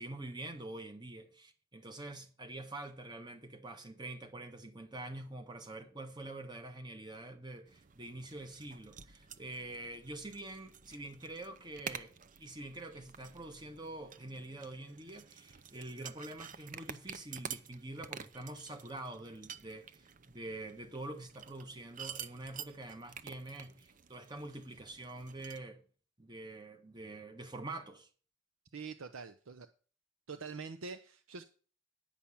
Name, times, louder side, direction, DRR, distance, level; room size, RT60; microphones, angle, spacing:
voice 1, 0.0-12.1 12.4-25.8 26.2-28.1, right 2 dB, 20° right, 1.3 m, -46 dB
sound 1, 7.7-25.6, right 7 dB, 40° right, 0.6 m, -50 dB
voice 2, 28.7-29.7 30.3-31.4, right 4 dB, 80° right, 0.7 m, -45 dB
10.0 x 5.8 x 7.1 m
head